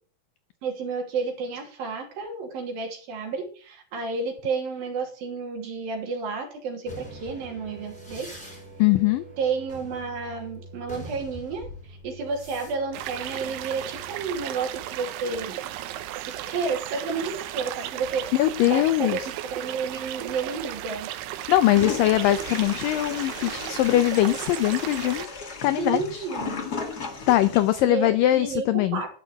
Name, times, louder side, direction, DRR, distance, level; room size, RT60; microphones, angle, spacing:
voice 1, 0.6-8.3 9.4-15.6 16.3-18.3 18.7-19.2 19.5-21.1 25.8-26.7 27.8-29.1, right 4 dB, 60° right, 2 dB, 4.4 m, -31 dB
sound 1, 6.8-14.4, right 1 dB, ahead, 4.2 m, -44 dB
voice 2, 8.8-9.2 18.3-19.3 21.5-25.3 25.6-26.3 27.3-29.0, left 14 dB, 85° left, 12 dB, 1.9 m, -21 dB
sound 2, 12.9-25.3, right 13 dB, 80° right, 2.9 m, -35 dB
Toilet flush, 21.7-27.8, left 4 dB, 50° left, 1.1 m, -36 dB
12.0 x 6.2 x 7.9 m, 0.42 s
omnidirectional pair, 4.7 m